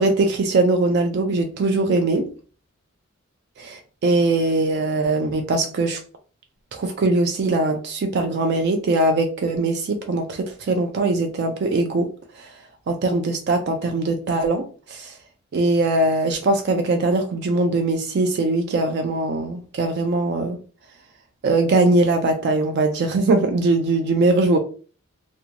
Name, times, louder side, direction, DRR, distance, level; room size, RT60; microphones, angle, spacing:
voice 1, 0.0-2.3 3.6-6.0 6.7-12.1 12.4-12.5 12.9-15.2 15.5-20.6 21.4-24.6, right 2 dB, 50° right, 0.3 m, -21 dB
2.5 x 2.2 x 2.8 m
head